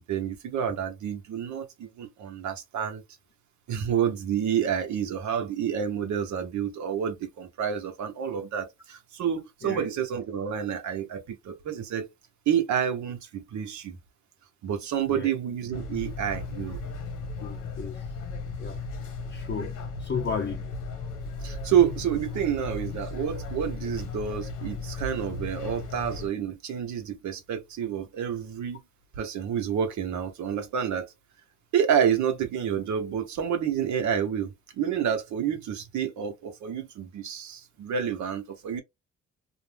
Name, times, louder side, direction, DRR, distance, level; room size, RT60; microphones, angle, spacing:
voice 1, 0.0-3.0 3.7-12.1 12.5-14.0 14.6-16.8 21.4-28.8 29.2-31.1 31.7-38.8, right 8 dB, 70° right, 0.8 m, -29 dB
sound 1, 15.7-26.3, left 3 dB, 80° left, 1.2 m, -36 dB
voice 2, 17.4-18.0 18.6-18.8 19.3-20.7, left 6 dB, 40° left, 0.6 m, -34 dB
2.5 x 2.1 x 3.2 m
cardioid pair, 90°, 30 cm